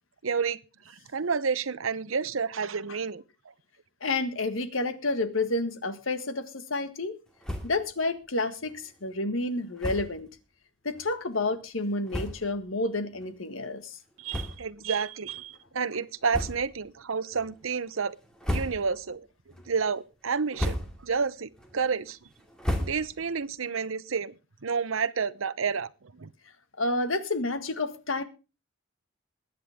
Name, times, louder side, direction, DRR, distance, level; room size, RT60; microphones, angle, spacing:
voice 1, 0.2-0.6 0.9-3.2 14.2-18.2 18.5-19.3 19.7-22.3 22.8-24.4 24.6-26.3, right 5 dB, 90° right, 0.8 m, -30 dB
voice 2, 4.0-7.2 7.6-10.3 10.8-14.0 26.8-28.2, left 2 dB, 85° left, 1.7 m, -30 dB
sound 1, 7.4-7.9 8.2-8.3 8.6-8.8 9.8-10.2 10.9-11.1 11.7-11.8 12.1-12.6 13.2-13.3 14.3-14.9 15.3-15.4 16.3-16.9 17.3-17.8 18.2-19.1 19.5-19.9 20.3-21.2 21.5-23.4, left 1 dB, 5° left, 2.5 m, -34 dB
21.5 x 9.4 x 3.6 m
head